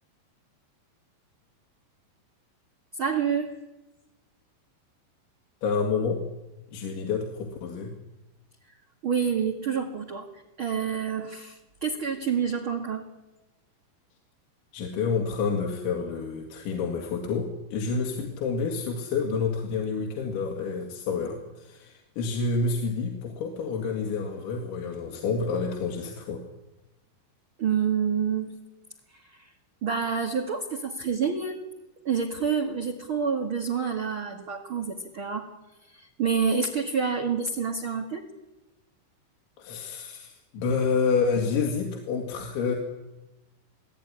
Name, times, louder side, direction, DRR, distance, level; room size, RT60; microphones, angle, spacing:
voice 1, 3.0-3.5 9.0-10.3 10.6-13.0 27.6-28.5 29.1-29.5 29.8-31.6 32.0-35.5 35.8-38.2, right 6 dB, 50° right, 2 dB, 1.5 m, -28 dB
voice 2, 5.6-6.2 6.7-7.9 14.7-26.4 39.6-42.8, left 5 dB, 80° left, 1 dB, 4.6 m, -28 dB
27.5 x 17.5 x 10.0 m, 1.0 s
omnidirectional pair, 5.3 m